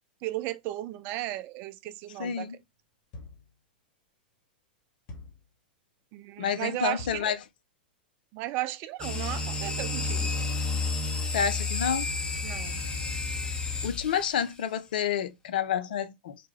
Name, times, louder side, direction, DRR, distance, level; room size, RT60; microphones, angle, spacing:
voice 1, 0.2-2.5 6.1-7.3 8.3-10.4 12.4-12.8, right 16 dB, 40° right, 0.3 m, -35 dB
voice 2, 2.2-2.6 6.4-7.4 11.3-12.1 13.8-16.4, left 8 dB, 65° left, 0.5 m, -29 dB
sound 1, 3.1-3.6 5.1-5.5 7.0-7.4, left 2 dB, 45° left, 1.2 m, -44 dB
sound 2, 9.0-14.5, left 3 dB, 15° left, 0.8 m, -31 dB
3.6 x 2.2 x 3.2 m
hypercardioid pair, 100°, 5 cm